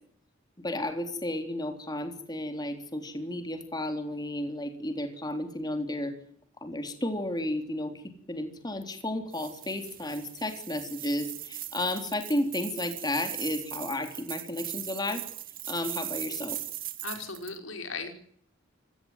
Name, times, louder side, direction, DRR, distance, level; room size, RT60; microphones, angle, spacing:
voice 1, 0.6-6.1 6.6-7.9 8.3-15.2 15.7-16.6, left 1 dB, 20° left, 6 dB, 3.8 m, -32 dB
sound 1, 9.3-17.6, right 13 dB, 45° right, 2.5 m, -39 dB
voice 2, 17.0-18.1, left 4 dB, 85° left, 6 dB, 5.4 m, -37 dB
28.0 x 18.0 x 9.4 m, 0.64 s
head